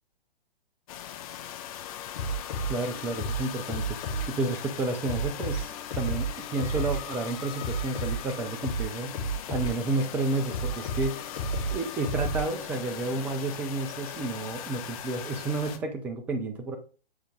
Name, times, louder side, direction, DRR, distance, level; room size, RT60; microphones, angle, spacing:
sound 1, 0.9-15.8, left 10 dB, 35° left, 0.8 m, -40 dB
sound 2, 2.2-4.3 4.5-4.7 5.0-7.0 7.3-10.2 10.5-13.0, right 2 dB, 60° left, 2.8 m, -32 dB
voice 1, 2.7-4.0 4.3-9.1 9.5-11.2 11.7-16.8, right 3 dB, 5° right, 5 dB, 0.3 m, -31 dB
7.2 x 5.1 x 3.6 m, 0.37 s
figure-of-eight pair, 120°, 31 cm